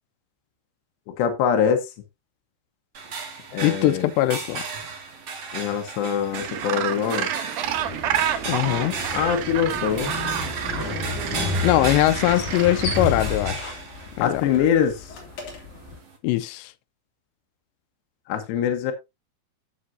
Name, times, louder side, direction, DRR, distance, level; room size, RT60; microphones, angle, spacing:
voice 1, 1.1-1.9 3.5-4.1 5.5-7.3 9.1-10.1 14.2-15.1 18.3-18.9, left 8 dB, 70° left, 3.1 m, -23 dB
sound 1, 2.9-16.2, right 4 dB, 45° right, 1.9 m, -36 dB
voice 2, 3.6-4.6 8.5-9.0 11.6-13.7 14.2-14.4 16.2-16.7, left 15 dB, 85° left, 2.5 m, -21 dB
Gull seagull, 6.3-13.1, right 10 dB, 80° right, 2.1 m, -29 dB
Motorcycle, 7.6-16.0, left 3 dB, 45° left, 3.8 m, -32 dB
13.0 x 7.2 x 2.7 m
omnidirectional pair, 5.7 m